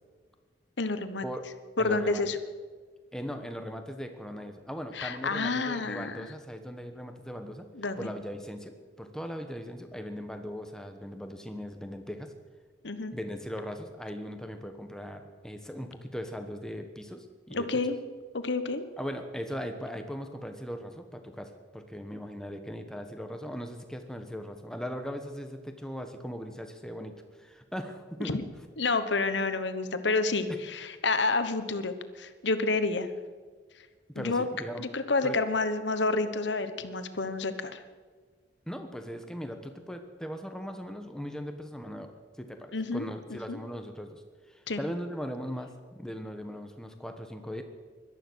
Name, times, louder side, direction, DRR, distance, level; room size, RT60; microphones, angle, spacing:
voice 1, 0.8-1.3 1.8-2.4 4.9-6.3 7.7-8.1 12.8-13.1 17.5-18.0 18.3-18.8 28.2-28.4 28.8-33.1 34.1-34.5 34.8-37.8 42.7-43.6 44.7-44.8, left 3 dB, 75° left, 10 dB, 1.2 m, -29 dB
voice 2, 1.8-2.3 3.1-7.7 8.0-12.3 13.1-17.8 19.0-28.4 30.5-30.6 34.1-34.8 35.2-35.4 38.7-44.2 44.5-47.6, equal, 5° left, 6 dB, 1.3 m, -39 dB
17.5 x 12.0 x 6.4 m, 1.5 s
head